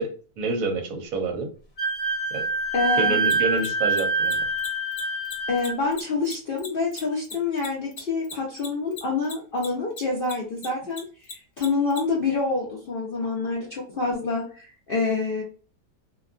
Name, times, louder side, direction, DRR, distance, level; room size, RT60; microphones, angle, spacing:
voice 1, 0.0-1.5 2.3-2.4 3.0-4.4, right 3 dB, 65° right, 3 dB, 1.0 m, -28 dB
Wind instrument woodwind instrument, 1.8-5.7, right 3 dB, 20° left, 0.9 m, -25 dB
voice 2, 2.7-3.2 5.5-11.0 11.3-15.4, left 4 dB, 80° left, -3 dB, 0.5 m, -27 dB
Mechanisms, 3.2-10.0 10.2-12.0, left 4 dB, 60° left, 1.0 m, -37 dB
2.7 x 2.3 x 2.4 m, 0.39 s
omnidirectional pair, 1.8 m